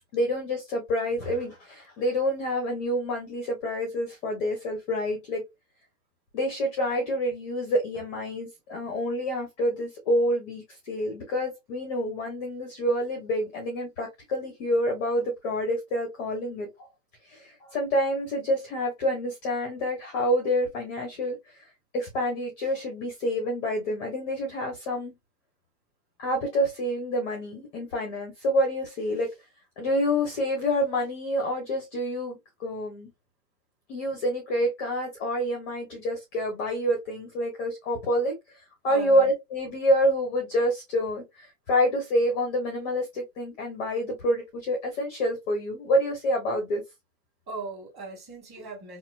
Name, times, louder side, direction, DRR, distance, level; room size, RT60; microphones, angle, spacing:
voice 1, 0.1-5.4 6.3-16.9 17.3-21.6 21.9-25.1 26.2-29.3 29.8-33.1 33.9-38.4 38.8-46.8, equal, 10° left, 0.4 m, -27 dB
voice 2, 38.9-39.3 47.5-49.0, right 3 dB, 20° right, 1.5 m, -38 dB
4.2 x 2.1 x 2.5 m
hypercardioid pair, 140°, 50 cm